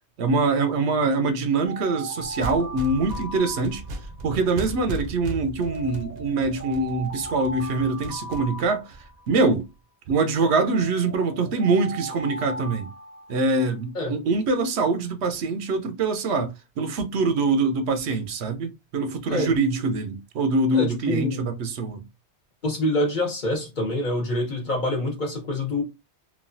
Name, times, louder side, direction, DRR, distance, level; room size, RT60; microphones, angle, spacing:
voice 1, 0.2-3.8 4.2-8.9 9.3-9.7 10.1-12.9 13.3-22.0, right 3 dB, 75° right, 0.9 m, -24 dB
Alarm, 1.6-4.3 5.6-9.3 10.6-13.8, right 1 dB, 20° left, 0.5 m, -38 dB
sound 1, 2.2-9.6, right 2 dB, 55° right, 0.5 m, -37 dB
voice 2, 20.7-21.4 22.6-25.8, left 1 dB, 45° left, 1.1 m, -26 dB
3.1 x 2.3 x 2.5 m
omnidirectional pair, 1.1 m